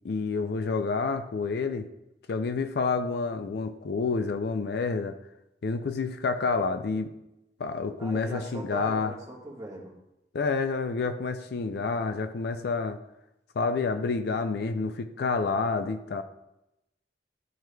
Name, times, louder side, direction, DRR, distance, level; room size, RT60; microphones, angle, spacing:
voice 1, 0.0-1.9 2.3-5.2 5.6-7.1 7.6-9.1 10.3-13.0 13.6-16.2, left 4 dB, 60° left, 9 dB, 0.4 m, -29 dB
voice 2, 8.0-10.0, right 1 dB, 20° right, -4 dB, 1.4 m, -39 dB
12.0 x 4.6 x 2.3 m, 0.89 s
head